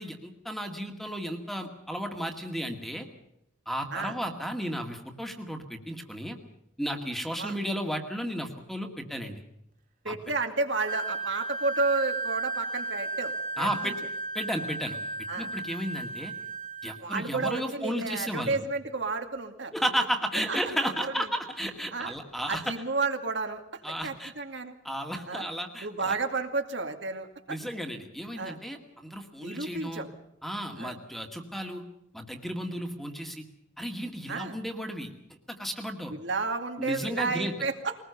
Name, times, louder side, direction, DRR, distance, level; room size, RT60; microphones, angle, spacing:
voice 1, 0.0-3.1 3.7-6.4 6.8-9.3 10.1-10.2 13.6-13.9 14.3-15.0 15.4-16.3 16.8-18.6 19.7-22.7 23.8-24.3 24.8-26.2 27.5-30.0 30.4-31.9 32.1-33.4 33.8-35.1 35.5-36.1 36.8-37.5, equal, ahead, 4 dB, 2.0 m, -33 dB
voice 2, 10.0-13.9 15.3-15.5 17.0-19.7 20.5-21.3 21.9-22.1 22.5-24.7 25.3-25.5 25.8-27.6 28.4-28.6 29.4-30.1 30.8-31.0 34.3-34.6 36.1-38.0, right 3 dB, 65° right, 4 dB, 2.4 m, -32 dB
Wind instrument woodwind instrument, 10.8-17.0, right 3 dB, 40° right, 2.3 m, -34 dB
22.0 x 20.0 x 7.0 m, 0.80 s
head